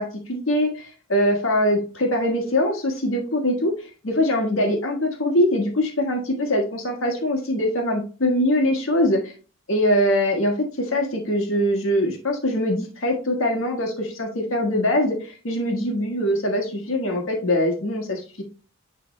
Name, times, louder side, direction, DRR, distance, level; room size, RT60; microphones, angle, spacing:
voice 1, 0.0-3.7 4.0-9.3 9.7-18.4, left 1 dB, 75° left, 1 dB, 1.5 m, -23 dB
10.0 x 3.5 x 3.2 m, 0.36 s
head